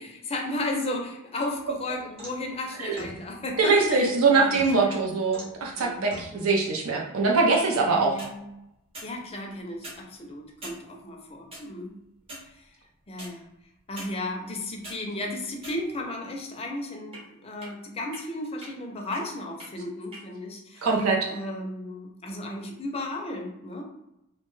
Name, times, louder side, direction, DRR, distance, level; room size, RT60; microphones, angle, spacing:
voice 1, 0.0-5.0 5.8-6.0 6.3-6.5 7.8-8.4 9.0-12.0 12.4-12.7 13.1-13.5 13.9-21.0 21.3-23.8, left 1 dB, 30° left, 1 dB, 0.4 m, -34 dB
sound 1, 1.6-2.5 3.0-4.0 4.5-5.0 5.3-5.6 6.1-6.3 8.0-8.3 8.9-9.1 9.7-10.0 10.6-10.8 11.5-11.6 12.2-12.5 13.2-13.3 14.0-14.1 14.6-15.0 15.6-16.1 17.1-17.2 17.6-17.7 18.1-18.2 18.6-18.7 19.1-19.2 19.6-19.7 20.1-20.2, equal, 25° right, 0.7 m, -42 dB
voice 2, 3.6-8.2 20.8-21.3, right 4 dB, 70° right, 0 dB, 0.5 m, -23 dB
2.6 x 2.1 x 3.0 m, 0.86 s
head